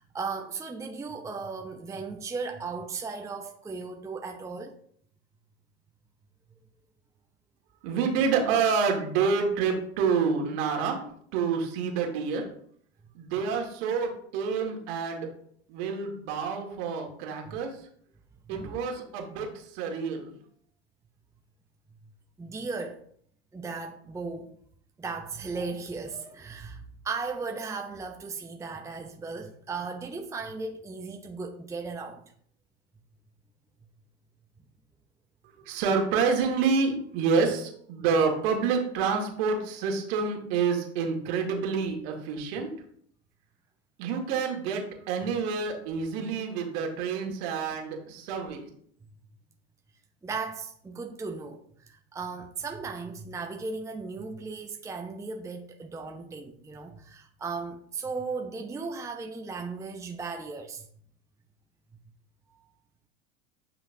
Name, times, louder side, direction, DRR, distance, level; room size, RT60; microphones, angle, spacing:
voice 1, 0.0-4.7 12.0-12.1 17.4-17.6 18.5-18.8 22.4-23.0 23.5-24.6 25.0-32.2 50.2-60.9, right 4 dB, 10° right, 4 dB, 0.7 m, -36 dB
voice 2, 7.8-11.1 11.3-12.5 13.1-15.3 15.7-17.7 18.5-20.3 35.7-42.7 44.0-48.7, right 5 dB, 60° right, 2 dB, 1.9 m, -28 dB
9.2 x 5.8 x 2.7 m, 0.62 s
hypercardioid pair, 85°, 34 cm